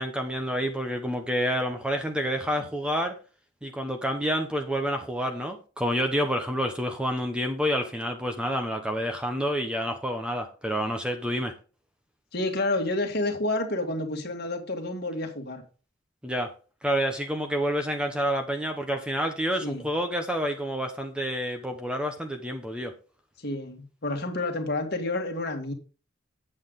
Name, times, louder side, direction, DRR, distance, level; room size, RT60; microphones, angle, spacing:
voice 1, 0.0-3.1 3.6-11.5 16.2-16.5 16.8-22.9, equal, 5° right, 0.9 m, -28 dB
voice 2, 12.3-15.6 19.6-19.9 23.4-25.7, left 2 dB, 50° left, 1.8 m, -29 dB
8.7 x 7.7 x 3.7 m
head